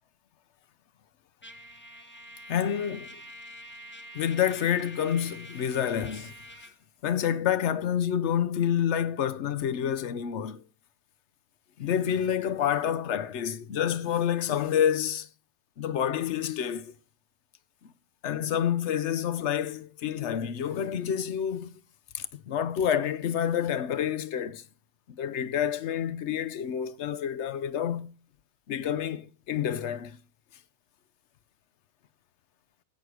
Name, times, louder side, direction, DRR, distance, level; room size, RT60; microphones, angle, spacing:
Trumpet, 1.4-6.8, right 1 dB, 10° left, 0.9 m, -46 dB
voice 1, 2.5-3.2 4.1-6.3 7.0-10.6 11.8-15.3 15.8-17.0 18.2-21.8 22.1-24.6 25.1-28.1 28.7-30.2, left 9 dB, 60° left, 0.8 m, -28 dB
16.0 x 6.4 x 4.7 m
omnidirectional pair, 1.6 m